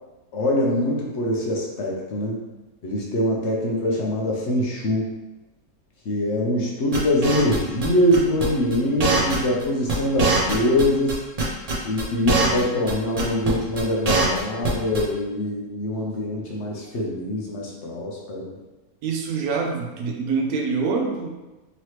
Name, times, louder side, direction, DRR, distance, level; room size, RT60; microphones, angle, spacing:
voice 1, 0.3-2.4 2.8-5.1 6.0-11.2 11.8-18.5, left 1 dB, 55° left, -2 dB, 0.8 m, -23 dB
sound 1, 6.9-7.9 8.1-8.5 8.7-8.8 9.0-9.6 9.9-10.0 10.2-11.1 11.4-12.6 12.9-13.0 13.2-13.5 13.8-14.7 14.9-15.0, right 3 dB, 55° right, 0.4 m, -22 dB
voice 2, 19.0-21.3, right 4 dB, 70° right, 1 dB, 0.9 m, -25 dB
4.0 x 3.0 x 3.0 m, 1.1 s
omnidirectional pair, 1.8 m